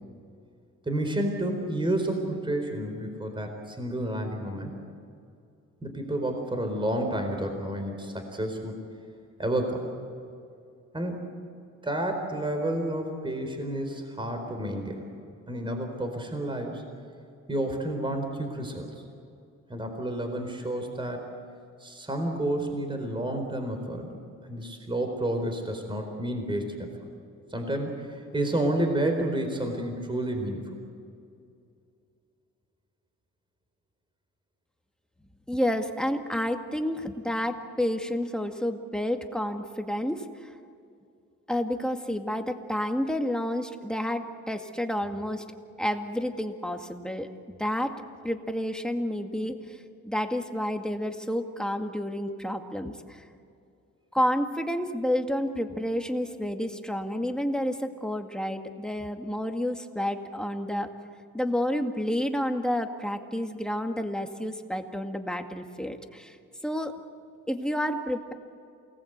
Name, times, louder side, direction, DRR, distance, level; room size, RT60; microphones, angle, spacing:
voice 1, 0.9-4.8 5.8-8.8 9.4-9.9 10.9-11.4 11.8-15.0 15.5-16.8 17.5-18.9 19.7-21.3 21.8-24.2 24.5-26.9 27.5-30.6, right 1 dB, 15° right, 4 dB, 4.4 m, -30 dB
voice 2, 35.5-40.5 41.5-45.4 45.8-47.3 47.6-48.0 48.2-49.8 50.0-53.2 54.1-60.9 61.3-66.4 66.6-66.9 67.5-68.3, equal, 5° left, 4 dB, 2.1 m, -30 dB
28.5 x 19.5 x 8.2 m, 2.4 s
cardioid pair, 90°, 30 cm